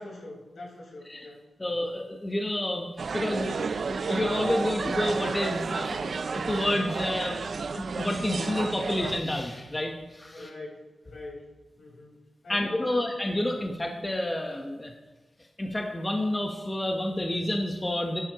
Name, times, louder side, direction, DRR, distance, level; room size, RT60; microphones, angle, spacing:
voice 1, 0.0-1.9 10.3-11.5 11.8-12.2 12.4-13.0 13.5-13.6, left 2 dB, 80° left, -4 dB, 5.0 m, -44 dB
voice 2, 1.6-2.9 3.1-10.5 12.5-14.9 15.6-18.2, left 1 dB, 20° left, 2 dB, 1.2 m, -29 dB
sound 1, 3.0-9.2, right 4 dB, 65° right, 0.5 m, -32 dB
15.5 x 11.5 x 3.1 m, 1.1 s
wide cardioid pair, 95°, 0 cm